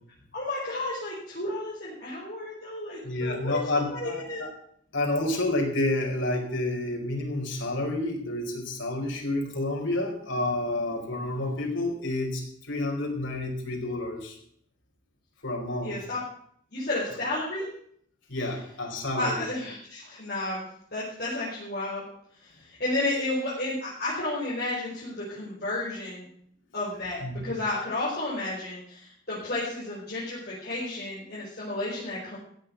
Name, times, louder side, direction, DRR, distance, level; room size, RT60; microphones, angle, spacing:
voice 1, 0.3-4.4 15.8-16.2 16.7-17.7 19.2-20.6 20.9-22.0 22.8-26.3 26.7-32.4, left 2 dB, 50° left, -8 dB, 5.2 m, -32 dB
voice 2, 3.0-4.5 4.9-14.4 15.4-15.9 18.3-19.5 27.2-27.5, left 2 dB, 80° left, 0 dB, 4.7 m, -29 dB
15.5 x 7.6 x 8.3 m, 0.64 s
head